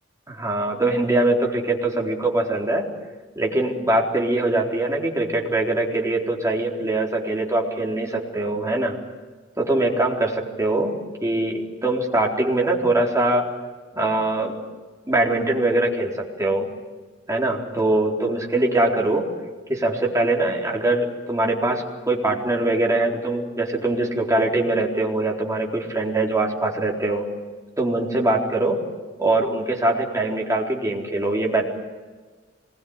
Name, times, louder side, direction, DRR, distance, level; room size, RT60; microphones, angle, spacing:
voice 1, 0.3-2.9 3.4-9.0 9.6-13.5 13.9-14.5 15.1-16.7 17.3-19.2 19.7-27.3 27.8-28.8 29.2-31.6, right 2 dB, 15° right, -1 dB, 4.1 m, -22 dB
26.0 x 21.0 x 9.7 m, 1.4 s
head